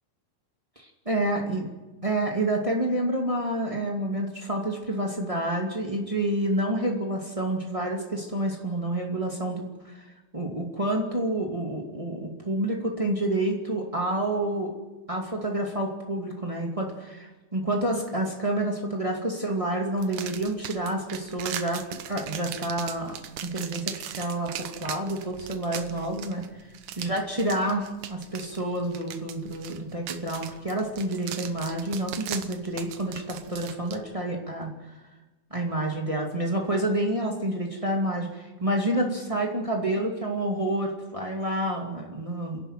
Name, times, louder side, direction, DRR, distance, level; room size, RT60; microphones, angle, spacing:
voice 1, 0.7-1.7 2.0-10.0 10.3-14.7 15.1-23.1 23.4-26.5 26.9-34.7 35.5-42.6, right 1 dB, 35° right, 0 dB, 0.5 m, -28 dB
sound 1, 20.0-34.0, right 10 dB, 90° right, 1.7 m, -39 dB
30.0 x 11.5 x 9.1 m, 1.1 s
omnidirectional pair, 5.2 m